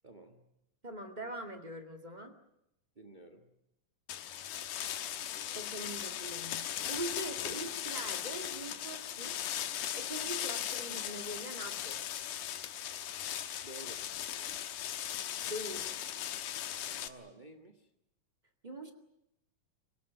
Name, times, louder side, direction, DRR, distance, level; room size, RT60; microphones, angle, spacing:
voice 1, 0.0-0.5 2.9-3.5 13.6-14.0 17.0-17.9, right 2 dB, 65° right, 4 dB, 0.4 m, -52 dB
voice 2, 0.8-2.3 5.5-9.7 10.0-12.1 15.4-15.9 16.1-16.2 18.6-18.9, right 1 dB, 20° right, 5 dB, 1.4 m, -43 dB
sound 1, 4.1-17.1, left 11 dB, 70° left, 2.6 m, -38 dB
26.5 x 17.5 x 9.3 m, 0.82 s
omnidirectional pair, 4.1 m